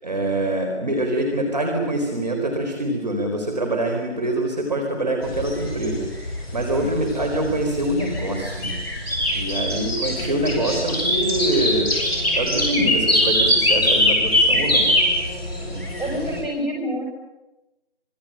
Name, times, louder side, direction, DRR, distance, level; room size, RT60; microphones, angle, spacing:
voice 1, 0.0-8.8 9.3-11.9 12.3-14.9 15.6-15.8, right 1 dB, 35° right, 2 dB, 4.3 m, -25 dB
sound 1, 5.2-16.4, left 1 dB, 15° left, 7.8 m, -22 dB
voice 2, 16.0-17.0, equal, 10° right, -9 dB, 6.4 m, -27 dB
26.0 x 23.5 x 9.0 m, 1.0 s
figure-of-eight pair, 170°, 35 cm